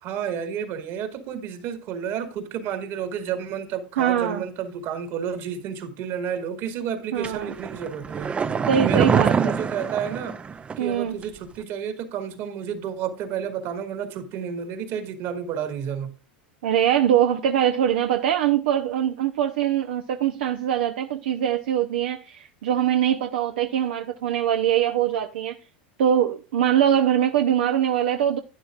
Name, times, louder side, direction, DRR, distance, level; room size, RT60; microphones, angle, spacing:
voice 1, 0.0-8.3 8.8-10.4 10.8-16.1, right 8 dB, 50° right, 2.1 m, -31 dB
voice 2, 4.0-4.4 7.1-7.5 8.7-9.6 10.8-11.1 16.6-25.6 26.0-28.4, right 10 dB, 80° right, 0.7 m, -22 dB
sound 1, 7.2-10.9 11.2-11.3, right 6 dB, 20° right, 0.5 m, -25 dB
11.5 x 9.7 x 2.5 m
supercardioid pair, 110°, 6 cm